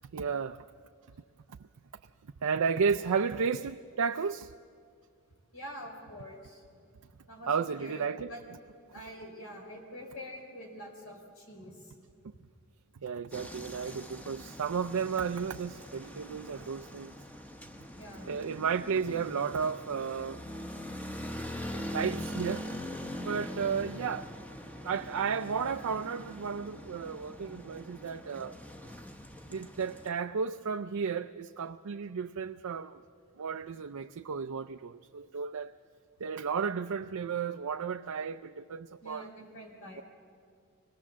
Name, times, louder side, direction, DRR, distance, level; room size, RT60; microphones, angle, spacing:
voice 1, 0.1-0.6 2.4-4.5 7.5-8.3 13.0-17.1 18.3-20.4 21.9-22.7 23.2-24.3 24.8-28.6 29.5-33.0 33.4-35.7 36.2-39.3, right 6 dB, 85° right, 0.5 m, -33 dB
voice 2, 5.5-6.8 7.3-7.5 7.8-8.4 8.9-11.9 18.0-18.3 28.2-28.4 39.0-40.0, equal, 70° left, 4.1 m, -46 dB
sound 1, 13.3-30.1, equal, 5° left, 0.9 m, -42 dB
25.0 x 18.5 x 7.4 m
head